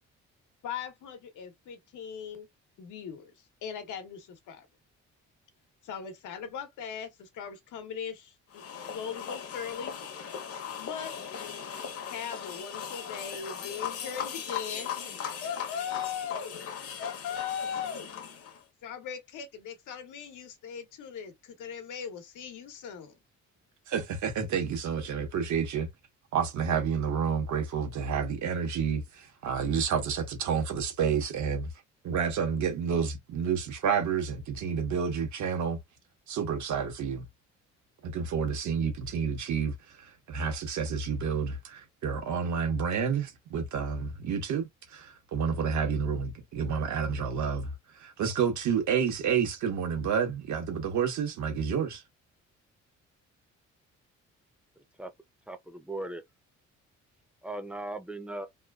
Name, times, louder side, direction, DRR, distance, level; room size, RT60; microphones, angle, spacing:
voice 1, 0.6-2.5 2.8-3.3 3.6-4.7 5.8-9.9 10.8-11.1 12.1-14.9 15.4-16.5 17.0-18.1 18.8-23.2, left 7 dB, 85° left, 1.0 m, -39 dB
sound 1, 8.5-18.6, left 8 dB, 50° left, 0.8 m, -38 dB
voice 2, 23.9-25.9 26.3-31.7 32.0-35.8 36.3-37.2 38.0-52.0, right 6 dB, 70° right, 1.1 m, -30 dB
voice 3, 55.5-56.2 57.4-58.5, right 2 dB, 5° right, 0.5 m, -38 dB
3.0 x 2.2 x 2.3 m
cardioid pair, 90°, 30 cm